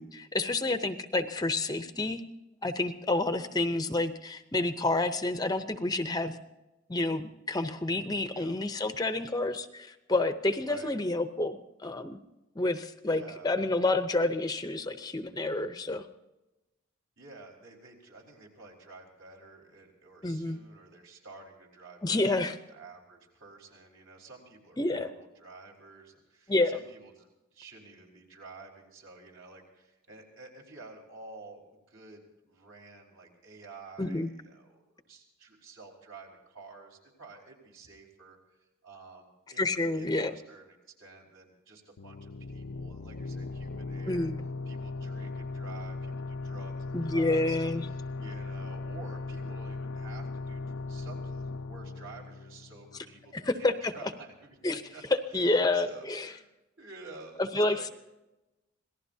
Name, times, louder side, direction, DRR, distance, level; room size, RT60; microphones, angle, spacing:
voice 1, 0.0-2.2 2.6-6.4 6.9-12.2 12.6-16.0 20.2-20.6 22.0-22.6 24.8-25.1 26.5-26.8 34.0-34.3 39.6-40.3 44.1-44.3 46.9-47.9 53.3-53.9 54.6-54.8 55.3-56.3 57.4-57.9, left 2 dB, 20° left, 9 dB, 0.7 m, -29 dB
voice 2, 3.3-3.7 8.3-8.5 10.7-10.9 13.0-13.5 17.2-44.3 44.7-55.0 55.3-56.5 56.8-57.9, right 3 dB, 70° right, -1 dB, 4.7 m, -51 dB
sound 1, 42.0-53.4, left 3 dB, 85° left, 0.7 m, -38 dB
26.5 x 18.5 x 2.8 m, 1.0 s
head